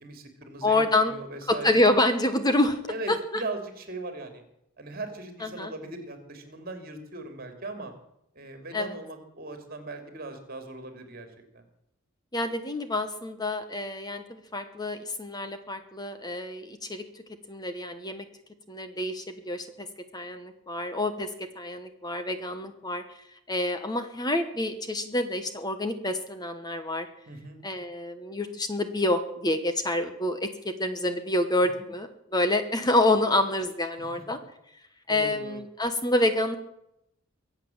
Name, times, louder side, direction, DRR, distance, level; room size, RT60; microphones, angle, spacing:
voice 1, 0.0-1.8 2.9-4.4 4.8-7.9 8.3-11.3 11.5-11.7 27.3-27.6 31.7-31.9 35.1-35.6, right 2 dB, 45° right, 7 dB, 3.0 m, -39 dB
voice 2, 0.6-1.1 1.6-2.8 3.1-3.4 5.4-5.7 8.7-8.9 12.3-17.0 17.5-18.2 18.7-19.7 20.1-21.3 21.5-23.0 23.5-27.1 27.6-30.5 30.8-34.4 35.1-36.6, left 1 dB, 20° left, 9 dB, 1.1 m, -27 dB
23.5 x 8.3 x 7.2 m, 0.80 s
head